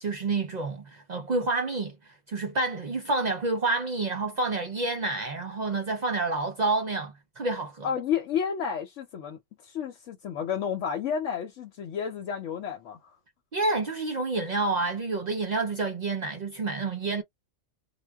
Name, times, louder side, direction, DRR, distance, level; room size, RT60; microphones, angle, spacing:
voice 1, 0.0-1.9 2.3-7.9 13.5-17.2, right 3 dB, 55° right, 0.5 m, -28 dB
voice 2, 7.8-13.2, left 7 dB, 85° left, 1.0 m, -31 dB
2.2 x 2.1 x 3.4 m
omnidirectional pair, 1.2 m